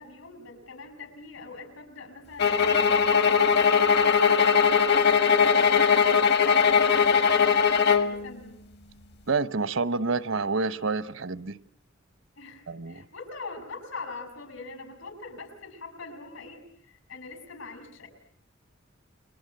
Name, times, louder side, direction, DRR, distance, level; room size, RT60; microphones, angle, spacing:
voice 1, 0.0-3.4 3.9-4.8 5.2-8.6 12.4-18.1, left 3 dB, 80° left, 9 dB, 6.3 m, -42 dB
sound 1, 2.4-8.1, left 6 dB, 55° left, 1.3 m, -20 dB
voice 2, 9.3-11.6 12.7-13.0, right 4 dB, 75° right, 15 dB, 1.0 m, -28 dB
30.0 x 23.0 x 7.8 m, 0.63 s
head